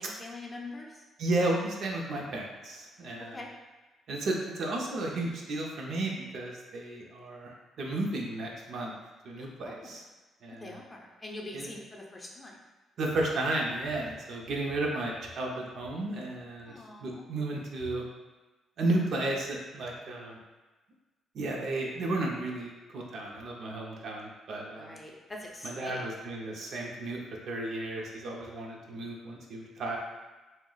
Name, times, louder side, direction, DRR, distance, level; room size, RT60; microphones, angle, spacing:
voice 1, 0.0-1.0 3.3-3.5 9.4-9.9 10.6-12.5 16.7-17.3 19.9-20.0 24.7-26.1, left 2 dB, 20° left, -1 dB, 0.5 m, -44 dB
voice 2, 1.2-3.4 4.1-9.0 9.2-10.0 10.4-10.8 11.5-11.7 13.0-16.7 17.0-18.1 18.8-20.4 21.3-25.0 25.6-27.2 27.5-30.0, right 2 dB, 65° right, -1 dB, 0.5 m, -33 dB
2.4 x 2.0 x 3.8 m, 1.2 s
cardioid pair, 90°, 0 cm